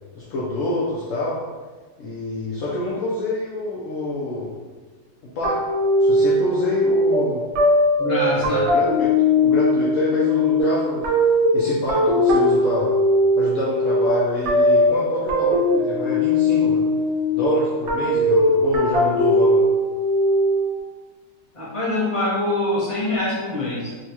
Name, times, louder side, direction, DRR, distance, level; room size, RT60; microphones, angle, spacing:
voice 1, 0.1-1.4 2.0-4.6 5.2-5.6 6.0-7.4 8.3-11.1 11.5-13.0 13.3-16.9 17.3-19.7, left 1 dB, 80° left, -6 dB, 0.7 m, -27 dB
sound 1, 5.4-20.8, left 1 dB, 75° right, 0.6 m, -19 dB
voice 2, 8.0-8.7 21.5-23.9, left 2 dB, 25° left, -10 dB, 0.7 m, -24 dB
3.9 x 2.2 x 2.8 m, 1.3 s
omnidirectional pair, 1.9 m